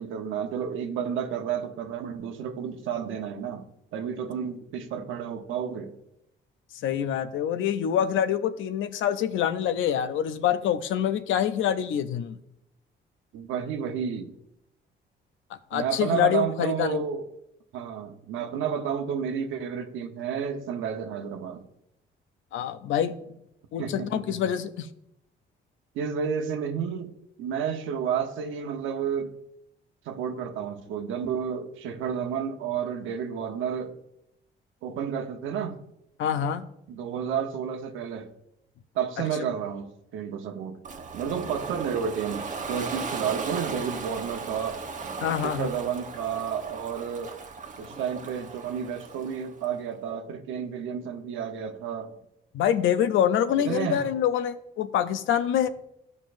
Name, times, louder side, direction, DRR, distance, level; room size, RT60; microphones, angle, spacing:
voice 1, 0.0-5.9 13.3-14.4 15.7-17.3 17.7-21.7 23.8-24.4 25.9-29.3 30.1-33.9 34.8-35.8 36.9-38.3 38.9-40.8 41.1-44.8 45.4-47.4 47.8-52.2 53.6-54.0, right 7 dB, 90° right, 0.9 m, -31 dB
voice 2, 6.8-12.4 15.7-17.0 22.5-23.2 23.7-24.9 36.2-36.7 45.2-45.7 52.5-55.7, left 9 dB, 80° left, 0.6 m, -26 dB
Ocean, 40.8-49.7, right 4 dB, 40° right, 0.9 m, -37 dB
13.5 x 5.4 x 2.6 m
cardioid pair, 90°, 20 cm